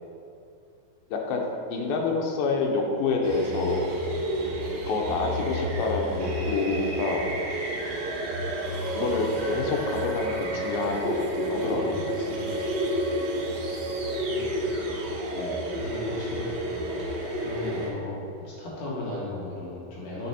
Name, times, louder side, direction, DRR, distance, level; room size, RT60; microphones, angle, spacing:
voice 1, 1.1-1.4 1.7-3.8 4.9-7.3 9.0-12.1 15.3-15.7 17.8-18.0, left 3 dB, 80° left, 1 dB, 2.7 m, -28 dB
sound 1, 3.2-17.9, equal, 80° right, 2.9 m, -30 dB
sound 2, 8.6-14.1, right 2 dB, 60° right, 2.0 m, -35 dB
voice 2, 11.6-13.0 14.2-15.3 15.7-16.5 17.3-20.3, left 2 dB, 65° left, -6 dB, 2.7 m, -37 dB
7.7 x 5.5 x 4.2 m, 2.5 s
omnidirectional pair, 4.2 m